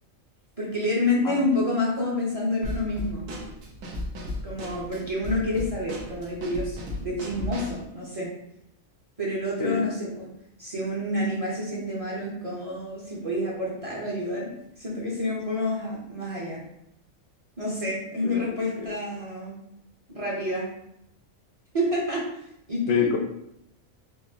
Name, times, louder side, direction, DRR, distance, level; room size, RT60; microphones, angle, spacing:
voice 1, 0.6-3.3 4.4-8.3 9.2-10.3 10.6-14.5 14.8-16.6 17.6-19.6 20.1-20.7 21.7-22.2 22.7-23.1, left 1 dB, 30° right, -5 dB, 0.8 m, -28 dB
voice 2, 1.2-1.3 9.6-9.9 18.2-18.4 18.8-18.9 22.9-23.2, left 7 dB, 75° left, 3 dB, 1.0 m, -26 dB
Drum kit / Snare drum, 2.6-7.8, left 1 dB, 75° right, 1.2 m, -35 dB
4.6 x 2.6 x 2.8 m, 0.78 s
omnidirectional pair, 1.4 m